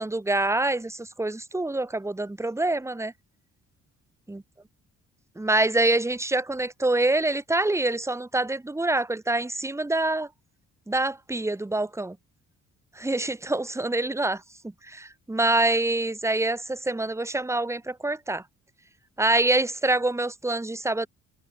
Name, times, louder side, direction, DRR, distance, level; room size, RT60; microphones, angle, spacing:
voice 1, 0.0-3.1 4.3-4.4 5.4-10.3 10.9-12.2 13.0-14.4 14.9-18.4 19.2-21.1, right 2 dB, 10° right, 1.4 m, -25 dB
cardioid pair, 90°, 30 cm